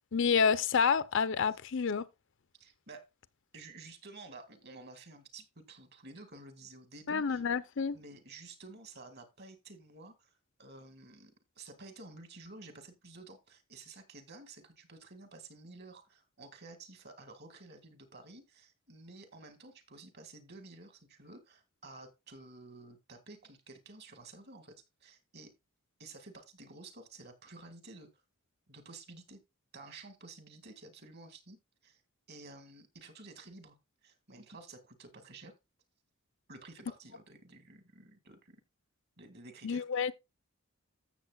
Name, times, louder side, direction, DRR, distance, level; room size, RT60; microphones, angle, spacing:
voice 1, 0.1-2.0 7.1-8.0 39.6-40.1, left 6 dB, 60° left, 0.6 m, -28 dB
voice 2, 2.6-3.1 3.5-7.4 7.9-25.5 26.0-28.2 28.7-29.4 29.7-32.0 32.3-33.8 34.0-35.5 36.5-38.6 39.2-40.1, right 3 dB, 50° right, 1.9 m, -52 dB
14.5 x 7.1 x 2.3 m
head